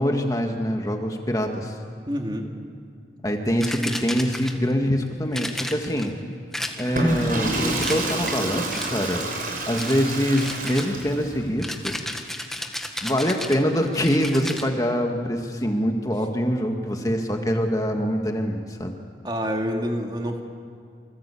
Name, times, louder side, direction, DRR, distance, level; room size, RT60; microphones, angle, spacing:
voice 1, 0.0-1.8 3.2-6.1 6.8-9.3 9.7-12.0 13.0-19.0, equal, 20° left, 3 dB, 2.0 m, -24 dB
voice 2, 2.1-2.5 19.2-20.4, equal, 25° right, 2 dB, 2.4 m, -27 dB
sound 1, 3.6-4.7 5.3-6.1 6.5-7.2 7.8-8.4 8.7-9.2 9.8-10.0 10.4-14.7, left 1 dB, ahead, 1.6 m, -33 dB
Water / Toilet flush, 6.8-11.3, right 2 dB, 50° right, 5.8 m, -28 dB
27.5 x 25.0 x 8.6 m, 2.3 s
head